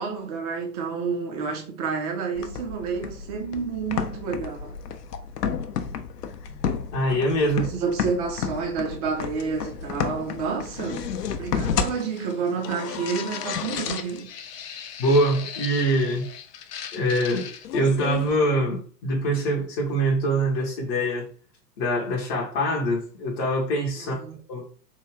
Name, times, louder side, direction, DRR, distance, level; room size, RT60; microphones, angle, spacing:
voice 1, 0.0-4.7 7.5-11.1 11.4-14.3 24.0-24.4, right 5 dB, 25° right, 0.6 m, -29 dB
sound 1, 2.3-18.4, left 7 dB, 75° left, 0.6 m, -32 dB
voice 2, 6.5-7.7 15.0-16.3 16.9-21.3 21.8-24.2 24.5-24.6, right 1 dB, 20° left, 0.6 m, -24 dB
3.5 x 2.3 x 3.1 m
figure-of-eight pair, 105°, 49 cm